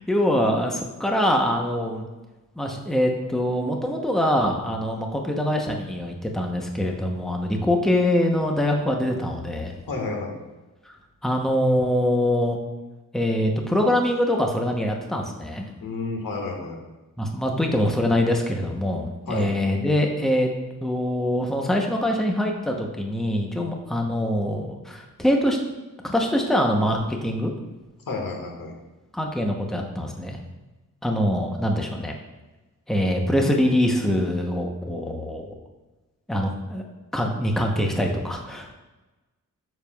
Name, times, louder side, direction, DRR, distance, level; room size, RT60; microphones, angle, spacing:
voice 1, 0.1-2.1 2.6-9.7 10.9-11.0 11.2-12.6 13.1-15.6 17.2-20.5 20.8-25.6 26.0-27.5 29.1-30.4 31.0-32.1 32.9-35.6 36.3-36.8 37.1-38.7, left 1 dB, ahead, 1 dB, 0.8 m, -24 dB
voice 2, 9.9-10.4 15.8-16.8 19.3-19.5 28.1-28.7, left 3 dB, 85° left, 1 dB, 1.6 m, -30 dB
9.5 x 7.3 x 2.3 m, 1.1 s
wide cardioid pair, 145°, 33 cm